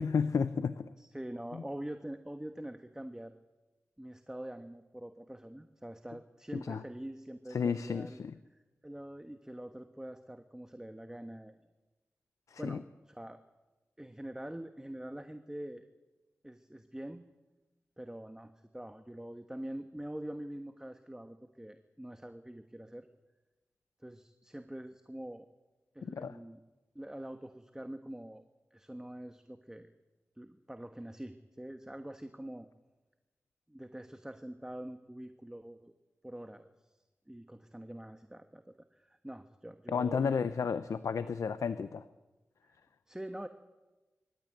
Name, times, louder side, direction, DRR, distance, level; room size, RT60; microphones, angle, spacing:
voice 1, 0.0-0.9 6.7-6.8 7.5-8.3 12.5-12.8 26.0-26.4 39.9-42.0, left 6 dB, 85° left, 13 dB, 0.7 m, -32 dB
voice 2, 1.0-3.4 4.0-8.2 8.5-11.6 12.6-13.4 14.0-15.8 16.4-17.2 18.0-23.1 24.0-25.5 25.9-26.6 26.9-28.4 28.7-29.9 30.4-32.7 33.7-35.9 36.2-37.0 37.3-40.4 43.1-43.5, right 1 dB, 10° right, 8 dB, 1.3 m, -45 dB
24.5 x 13.5 x 9.2 m, 1.1 s
cardioid pair, 45°, 5 cm